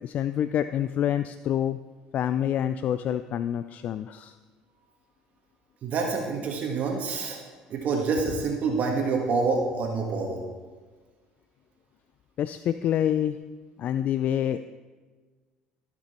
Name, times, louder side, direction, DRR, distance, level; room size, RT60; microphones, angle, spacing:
voice 1, 0.0-1.8 2.1-4.3 12.4-13.4 13.8-14.6, left 10 dB, 55° left, 11 dB, 0.3 m, -27 dB
voice 2, 5.8-7.4 7.7-10.4, right 4 dB, 55° right, 1 dB, 1.7 m, -27 dB
15.5 x 6.0 x 4.4 m, 1.4 s
supercardioid pair, 80°, 3 cm